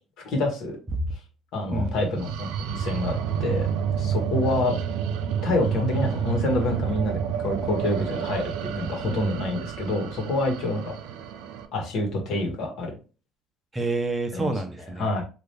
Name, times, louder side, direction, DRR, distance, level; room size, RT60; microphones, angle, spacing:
voice 1, 0.2-0.8 1.5-3.7 4.0-4.8 5.4-10.9 11.7-12.9 14.3-14.5 15.0-15.2, left 2 dB, 65° left, 2 dB, 1.1 m, -27 dB
voice 2, 1.7-2.1 9.0-9.5 13.7-15.1, right 2 dB, 15° right, 4 dB, 0.6 m, -29 dB
sound 1, 1.9-11.7, right 8 dB, 85° right, 0.4 m, -29 dB
2.9 x 2.5 x 3.3 m, 0.34 s
cardioid pair, 125°, 0 cm